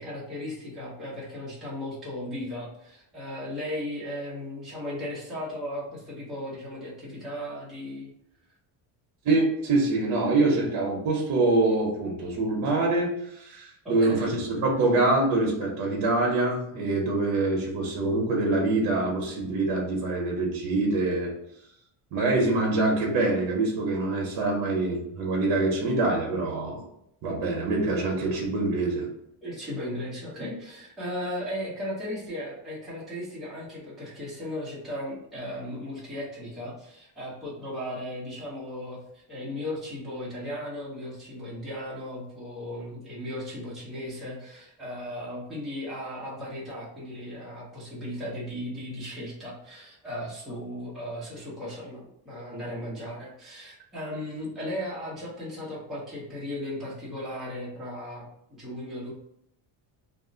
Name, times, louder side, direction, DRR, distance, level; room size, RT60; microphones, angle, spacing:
voice 1, 0.0-8.1 13.8-14.4 29.4-59.1, left 1 dB, ahead, -8 dB, 0.6 m, -36 dB
voice 2, 9.2-21.3 22.1-26.8 27.2-29.1, right 2 dB, 55° right, -1 dB, 0.8 m, -25 dB
2.4 x 2.0 x 3.7 m, 0.77 s
cardioid pair, 180°, 42 cm